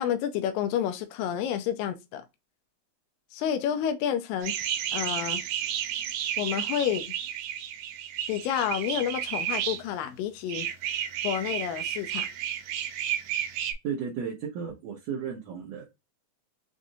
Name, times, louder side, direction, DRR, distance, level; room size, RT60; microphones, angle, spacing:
voice 1, 0.0-2.2 3.3-4.5 4.9-5.4 6.4-7.1 8.3-10.7 11.2-12.3, left 9 dB, 85° left, 2.3 m, -29 dB
sound 1, 4.4-9.8 10.5-13.7, right 10 dB, 85° right, 2.2 m, -32 dB
voice 2, 13.8-15.9, right 7 dB, 65° right, 1.8 m, -34 dB
6.1 x 2.5 x 2.6 m
omnidirectional pair, 3.9 m